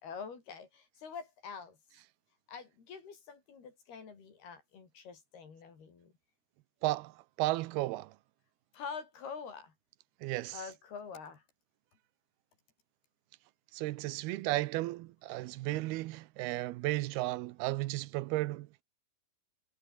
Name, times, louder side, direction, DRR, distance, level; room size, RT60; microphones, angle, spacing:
voice 1, 0.0-1.8 2.5-6.1 8.7-9.7 10.5-11.4, left 6 dB, 75° left, 6.9 m, -46 dB
voice 2, 6.8-7.1 7.4-8.1 10.2-10.6 13.7-18.7, right 18 dB, 80° right, 2.7 m, -34 dB
omnidirectional pair, 4.6 m